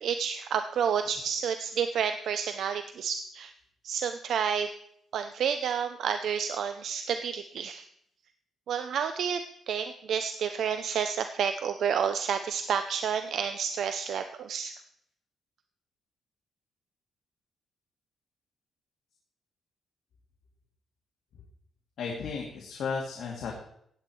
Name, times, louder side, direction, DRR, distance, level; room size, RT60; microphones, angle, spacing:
voice 1, 0.0-3.5 3.8-4.7 5.1-7.8 8.7-9.4 9.7-14.7, right 7 dB, 65° right, 9 dB, 0.6 m, -30 dB
voice 2, 22.0-23.5, left 5 dB, 65° left, -2 dB, 2.3 m, -34 dB
16.0 x 8.7 x 4.5 m, 0.69 s
cardioid pair, 145°, 0 cm